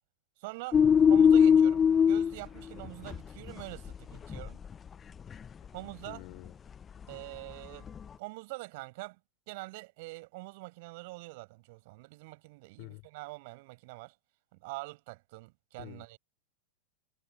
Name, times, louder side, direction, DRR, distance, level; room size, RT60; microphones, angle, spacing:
voice 1, 0.4-1.8 2.1-4.6 5.7-6.2 7.1-7.9 8.2-9.2 9.5-14.1 14.6-16.2, right 24 dB, 50° right, 5.0 m, -44 dB
sound 1, 0.7-2.3 2.8-3.2 3.5-4.0 4.3-4.7 5.3-5.4 7.9-8.0, left 7 dB, 20° left, 0.5 m, -21 dB
voice 2, 6.1-6.5 12.8-13.0 15.8-16.2, left 39 dB, 45° left, 4.8 m, -47 dB
figure-of-eight pair, 90°, 0 cm